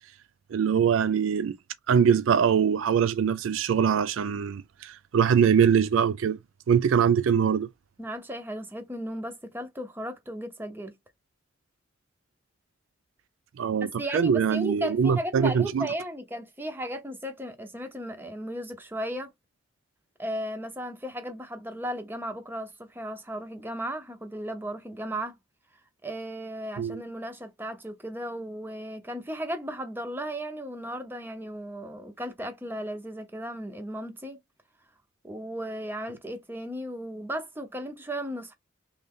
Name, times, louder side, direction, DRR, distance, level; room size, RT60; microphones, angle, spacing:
voice 1, 0.5-1.6 1.9-6.4 6.7-7.7 13.6-13.9 14.1-15.9 26.8-27.0, right 7 dB, 80° right, 0.4 m, -23 dB
voice 2, 8.0-10.9 14.0-19.3 20.2-25.3 26.0-34.4 35.2-38.5, equal, 10° right, 0.6 m, -35 dB
3.2 x 2.6 x 3.6 m
head